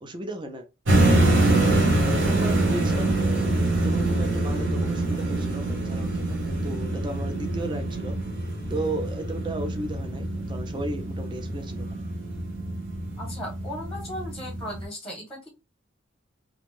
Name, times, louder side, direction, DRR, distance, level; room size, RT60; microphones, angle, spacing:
voice 1, 0.0-0.7 1.2-3.2 3.8-8.2 8.7-12.0, right 1 dB, 25° right, 0.4 m, -35 dB
sound 1, 0.9-14.8, right 2 dB, 70° right, 1.0 m, -25 dB
voice 2, 13.2-15.5, left 1 dB, 5° left, 0.9 m, -37 dB
2.5 x 2.2 x 3.2 m
head